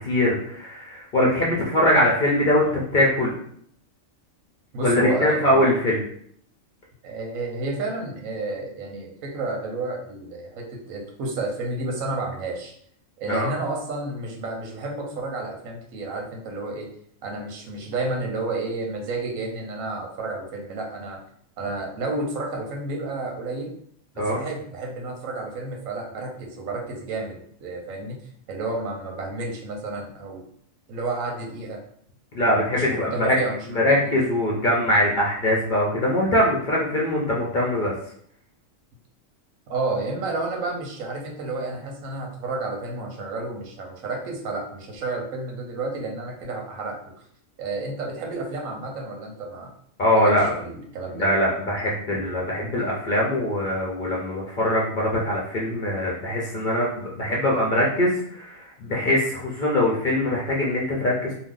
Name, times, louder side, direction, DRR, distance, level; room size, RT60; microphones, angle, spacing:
voice 1, 0.0-2.7 2.9-3.3 4.8-6.0 13.3-13.5 24.2-24.4 32.3-33.4 33.7-37.9 50.0-50.5 51.1-61.3, left 1 dB, 55° left, -4 dB, 0.5 m, -22 dB
voice 2, 4.7-5.7 7.0-12.7 13.2-16.9 17.2-21.2 21.6-23.7 24.1-28.2 28.5-30.4 30.9-31.8 32.7-34.1 39.7-47.0 47.6-49.7 50.1-51.3, right 2 dB, 80° right, 1 dB, 1.1 m, -31 dB
2.7 x 2.1 x 3.6 m, 0.66 s
omnidirectional pair, 1.4 m